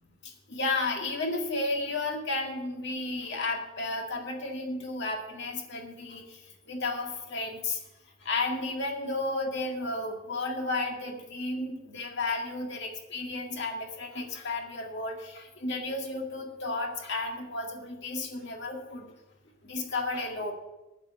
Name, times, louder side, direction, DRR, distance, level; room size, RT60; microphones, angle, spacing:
voice 1, 0.2-6.4 6.7-7.8 8.2-19.1 19.6-20.5, left 2 dB, 55° left, 2 dB, 1.9 m, -33 dB
9.4 x 5.9 x 8.4 m, 1.0 s
head